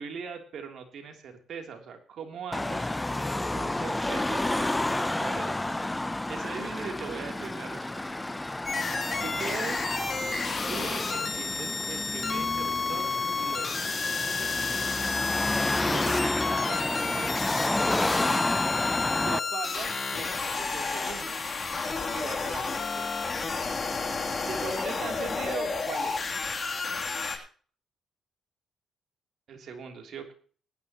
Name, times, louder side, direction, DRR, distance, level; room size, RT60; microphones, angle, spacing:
voice 1, 0.0-2.9 3.5-8.1 9.2-9.8 10.7-13.1 13.4-14.9 15.8-17.5 19.2-21.3 22.1-23.1 24.4-26.3 29.5-30.3, right 6 dB, 65° right, 4 dB, 3.2 m, -40 dB
Car passing by / Traffic noise roadway noise / Engine, 2.5-19.4, left 2 dB, 10° left, 0.6 m, -30 dB
sound 1, 8.7-27.4, left 4 dB, 35° left, 3.0 m, -31 dB
20.0 x 11.0 x 3.0 m, 0.41 s
cardioid pair, 90°, 0 cm